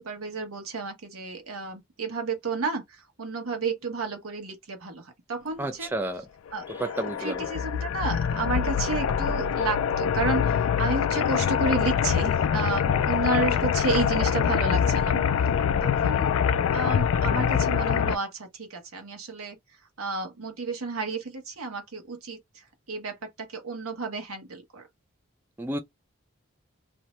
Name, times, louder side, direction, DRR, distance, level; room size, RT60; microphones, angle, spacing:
voice 1, 0.0-5.9 6.5-15.2 15.8-16.3 16.7-19.6 20.0-22.4 22.9-24.8, right 4 dB, 85° right, 1.0 m, -31 dB
voice 2, 5.6-6.2 6.7-7.4 25.6-25.8, right 2 dB, 10° right, 0.3 m, -31 dB
sound 1, 6.6-18.2, left 8 dB, 75° left, 0.3 m, -24 dB
2.6 x 2.1 x 3.0 m
head